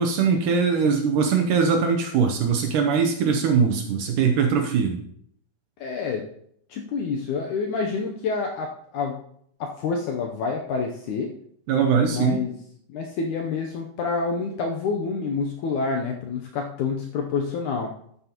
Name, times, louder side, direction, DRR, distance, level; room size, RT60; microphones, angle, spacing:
voice 1, 0.0-5.0 11.7-12.4, right 6 dB, 70° right, 4 dB, 2.1 m, -21 dB
voice 2, 5.8-6.2 6.7-9.2 9.6-11.3 12.0-12.5 12.9-17.9, left 4 dB, 75° left, 2 dB, 1.8 m, -28 dB
13.0 x 9.3 x 3.0 m, 0.68 s
omnidirectional pair, 4.4 m